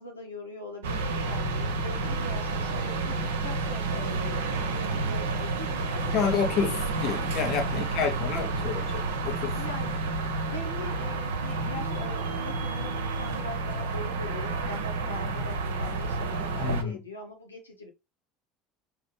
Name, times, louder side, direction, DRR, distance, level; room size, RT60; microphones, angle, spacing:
voice 1, 0.0-6.3 7.7-8.9 9.5-10.1 10.4-17.9, left 2 dB, 85° left, 0.9 m, -42 dB
sound 1, 0.8-16.8, right 3 dB, 70° right, 0.9 m, -30 dB
voice 2, 6.1-9.6 16.6-17.0, left 6 dB, 50° left, 1.3 m, -29 dB
5.0 x 3.0 x 3.4 m
figure-of-eight pair, 70°, 0 cm